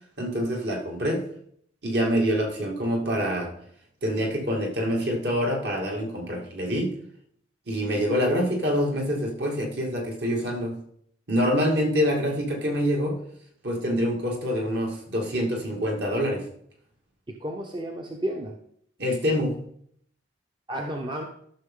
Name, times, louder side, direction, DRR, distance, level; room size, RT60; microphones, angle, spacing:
voice 1, 0.2-1.3 1.8-3.5 4.0-6.9 7.7-10.8 11.3-13.2 13.6-16.4 19.0-19.6, equal, 60° right, 0 dB, 2.3 m, -26 dB
voice 2, 17.3-18.6 20.7-21.2, right 1 dB, 25° right, 2 dB, 0.7 m, -32 dB
13.0 x 6.2 x 3.8 m, 0.66 s
head